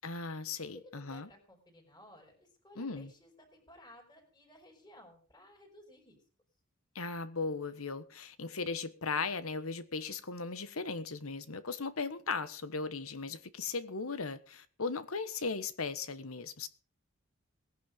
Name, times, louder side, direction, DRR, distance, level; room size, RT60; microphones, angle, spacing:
voice 1, 0.0-1.3 2.8-3.1 6.9-16.7, left 4 dB, 85° left, 1.4 m, -37 dB
voice 2, 0.7-6.2, left 1 dB, 20° left, 5.0 m, -57 dB
19.0 x 11.0 x 5.3 m
head